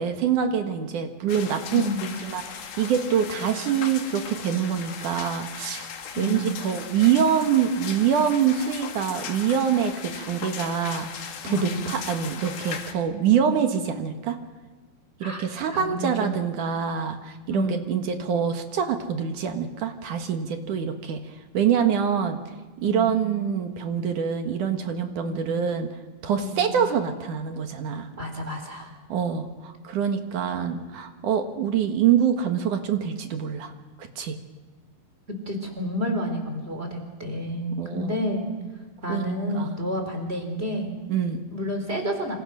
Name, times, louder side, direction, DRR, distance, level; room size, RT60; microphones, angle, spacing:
voice 1, 0.0-1.9 2.3-5.9 6.2-14.4 15.2-21.2 21.5-22.4 22.8-25.9 26.2-28.1 29.1-33.7 34.0-34.4 37.8-38.2 39.1-39.3 39.5-39.8 41.1-41.4, right 8 dB, 60° right, 6 dB, 2.7 m, -25 dB
sound 1, 1.3-12.9, left 7 dB, 70° left, 3.6 m, -38 dB
voice 2, 1.7-2.1 3.3-3.5 6.1-6.6 11.4-12.0 15.2-16.4 17.5-17.8 22.8-23.2 25.2-25.4 26.4-26.8 28.2-28.9 35.5-38.5 39.0-40.9 41.5-42.4, left 1 dB, 15° right, 4 dB, 3.8 m, -30 dB
27.5 x 26.0 x 6.4 m, 1.2 s
omnidirectional pair, 4.5 m